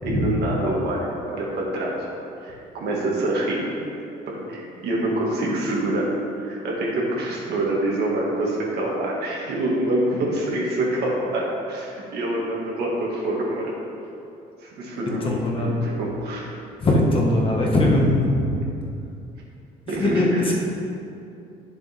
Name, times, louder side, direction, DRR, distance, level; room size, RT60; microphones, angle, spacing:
voice 1, 0.0-2.1 2.4-6.1 6.4-13.7 14.6-16.6 19.9-20.5, right 1 dB, 75° right, -4 dB, 2.2 m, -26 dB
voice 2, 15.2-15.8 16.8-18.5 20.0-20.5, left 1 dB, 30° left, -3 dB, 1.7 m, -20 dB
9.7 x 7.0 x 3.7 m, 2.6 s
cardioid pair, 110°, 17 cm